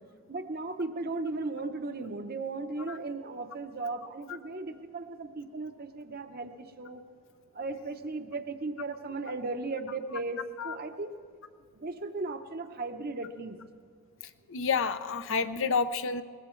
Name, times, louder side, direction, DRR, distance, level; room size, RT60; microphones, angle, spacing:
voice 1, 0.3-7.0 7.5-11.1 11.7-13.6, right 3 dB, 40° right, 7 dB, 0.8 m, -36 dB
voice 2, 14.5-16.2, left 5 dB, 60° left, 10 dB, 0.6 m, -29 dB
21.0 x 19.0 x 3.2 m, 2.2 s
head